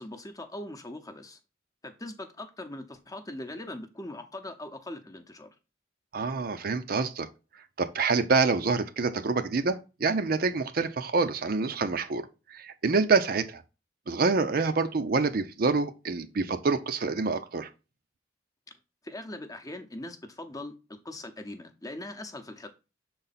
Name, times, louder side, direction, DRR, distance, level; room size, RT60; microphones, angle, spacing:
voice 1, 0.0-1.4 1.8-5.5 19.0-22.7, left 1 dB, 20° left, 0.8 m, -41 dB
voice 2, 6.1-7.3 7.8-12.2 12.5-13.6 14.1-17.7, right 4 dB, 50° right, 0.5 m, -26 dB
6.5 x 4.0 x 4.1 m
head